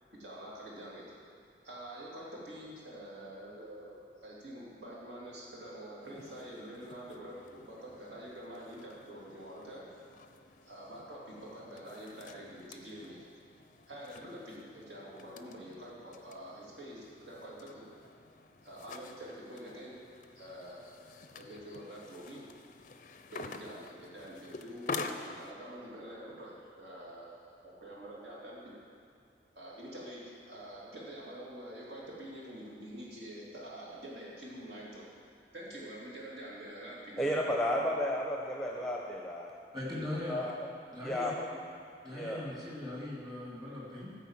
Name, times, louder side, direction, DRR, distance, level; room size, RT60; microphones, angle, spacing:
voice 1, 0.2-1.0 1.6-9.9 10.6-13.2 13.9-17.9 18.6-20.0 20.3-22.5 23.3-26.5 26.8-28.7 29.5-35.0 35.5-37.4, right 1 dB, 75° right, -5 dB, 2.7 m, -46 dB
sound 1, 6.0-25.5, left 4 dB, 45° left, 0.5 m, -48 dB
voice 2, 37.2-39.5 40.3-40.5 41.0-41.5 42.1-42.5, equal, 5° left, -2 dB, 0.7 m, -33 dB
voice 3, 39.7-40.4 40.9-41.3 42.0-44.2, left 1 dB, 20° right, -6 dB, 2.4 m, -39 dB
13.5 x 4.9 x 7.3 m, 2.4 s
head